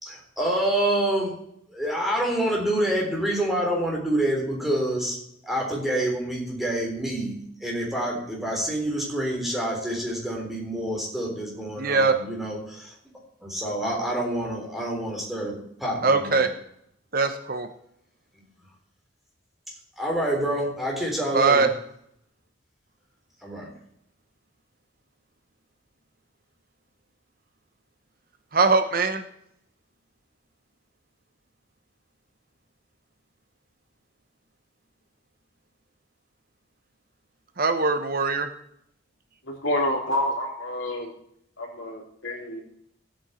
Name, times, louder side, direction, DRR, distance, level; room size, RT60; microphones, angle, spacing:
voice 1, 0.0-1.4 1.7-12.9 13.4-16.4 20.0-21.7 23.4-23.7, right 1 dB, ahead, -2 dB, 3.7 m, -27 dB
voice 2, 11.8-12.2 16.0-16.5 17.1-17.7 21.3-21.7 28.5-29.2 37.6-38.5, right 4 dB, 45° right, 8 dB, 1.0 m, -21 dB
voice 3, 39.5-41.1 41.6-42.6, left 1 dB, 75° left, 0 dB, 3.2 m, -28 dB
15.5 x 8.8 x 4.4 m, 0.71 s
head